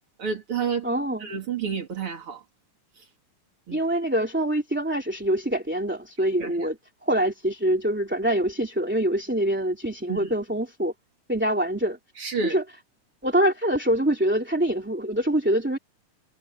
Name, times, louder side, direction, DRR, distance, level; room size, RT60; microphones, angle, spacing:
voice 1, 0.2-0.9 1.2-2.4 3.7-3.8 6.4-6.7 10.1-10.3 12.2-12.6, right 6 dB, 45° right, 3.3 m, -30 dB
voice 2, 0.8-1.3 3.7-10.9 11.3-12.0 12.4-12.6 13.2-15.8, right 1 dB, 5° right, 2.4 m, -25 dB
omnidirectional pair, 3.6 m